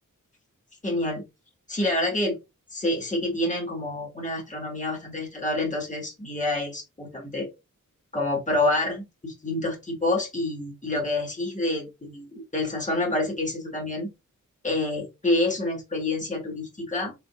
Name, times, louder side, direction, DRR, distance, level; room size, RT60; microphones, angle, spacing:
voice 1, 0.8-1.2 1.7-2.4 2.7-7.5 8.1-14.1 14.6-17.1, left 2 dB, 25° left, -1 dB, 2.0 m, -27 dB
5.2 x 3.8 x 2.5 m, 0.23 s
wide cardioid pair, 60°, 33 cm